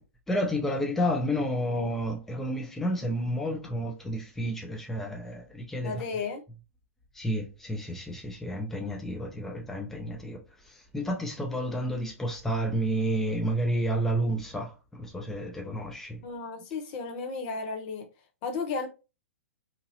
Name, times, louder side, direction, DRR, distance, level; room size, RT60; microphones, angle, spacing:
voice 1, 0.3-6.0 7.1-10.4 10.6-16.2, equal, 5° left, 0.6 m, -30 dB
voice 2, 5.8-6.4 16.2-18.1 18.4-18.9, left 4 dB, 40° left, 0.7 m, -34 dB
2.8 x 2.6 x 2.7 m
figure-of-eight pair, 115°, 8 cm